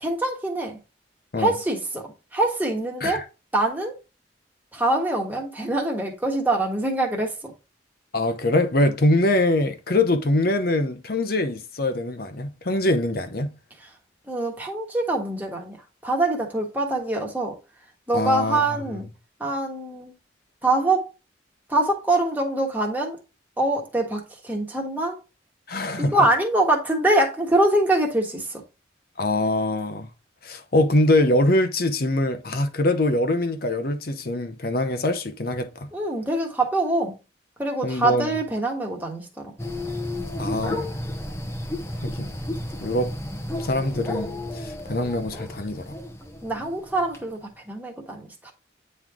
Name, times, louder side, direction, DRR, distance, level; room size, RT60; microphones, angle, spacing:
voice 1, 0.0-0.8 1.4-3.2 3.5-4.0 4.7-7.5 14.3-15.8 16.0-17.6 18.1-19.1 19.4-20.1 20.6-21.1 21.7-23.2 23.6-25.2 26.0-28.6 35.9-37.2 37.6-39.5 46.4-48.5, right 2 dB, 10° right, 1.4 m, -24 dB
voice 2, 8.1-13.5 18.1-18.7 25.7-26.1 29.2-30.1 30.4-35.9 37.8-38.3 40.4-40.9 42.0-42.3 42.8-43.2 43.6-46.0, left 1 dB, 50° left, 0.8 m, -23 dB
sound 1, 39.6-47.2, left 1 dB, 15° left, 0.8 m, -32 dB
9.1 x 3.3 x 3.6 m
head